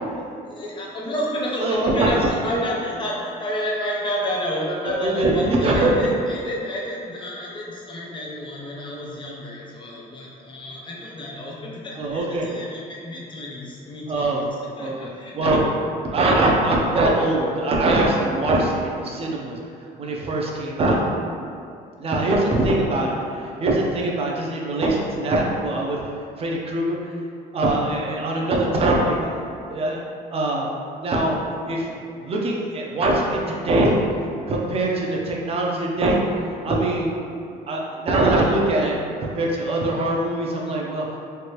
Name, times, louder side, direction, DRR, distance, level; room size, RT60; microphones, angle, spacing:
voice 1, 0.4-14.4 14.8-15.6 22.2-22.4, equal, 30° left, -4 dB, 0.7 m, -30 dB
voice 2, 1.6-2.5 4.8-5.9 12.0-12.5 14.1-14.5 14.8-15.1 15.3-15.6 16.1-19.6 20.0-21.0 22.0-27.1 27.5-29.3 29.7-30.0 30.3-30.7 31.0-31.9 32.2-34.0 34.5-37.1 37.7-41.2, right 2 dB, 35° right, -2 dB, 0.5 m, -22 dB
3.3 x 2.5 x 2.9 m, 2.4 s
cardioid pair, 110°, 17 cm